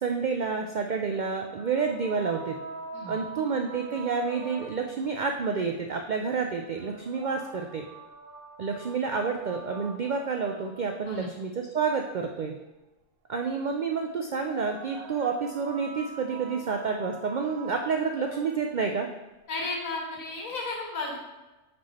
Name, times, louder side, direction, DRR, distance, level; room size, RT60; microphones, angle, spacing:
voice 1, 0.0-2.6 3.1-7.8 8.6-12.5 13.3-19.1, right 5 dB, 80° right, 3 dB, 0.4 m, -29 dB
sound 1, 1.1-5.1 6.6-11.1 14.3-18.8, right 4 dB, 50° right, 0.8 m, -43 dB
voice 2, 2.9-3.2 11.1-11.3 19.5-21.2, left 2 dB, 85° left, 0 dB, 1.8 m, -34 dB
6.2 x 4.5 x 4.1 m, 1.1 s
omnidirectional pair, 1.4 m